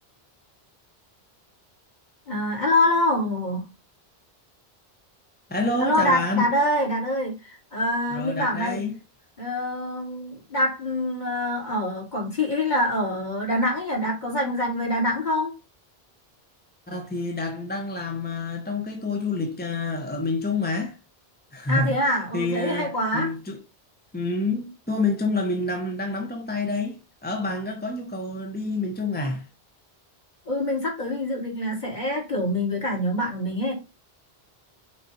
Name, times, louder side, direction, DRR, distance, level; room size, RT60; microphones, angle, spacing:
voice 1, 2.3-3.6 5.8-8.8 9.4-15.5 21.7-23.3 30.5-33.7, left 1 dB, 45° left, 3.5 m, -25 dB
voice 2, 5.5-6.5 8.1-9.0 16.9-21.0 21.5-23.6 24.1-29.5, left 2 dB, 10° left, 1.0 m, -28 dB
6.7 x 4.1 x 4.3 m
omnidirectional pair, 1.0 m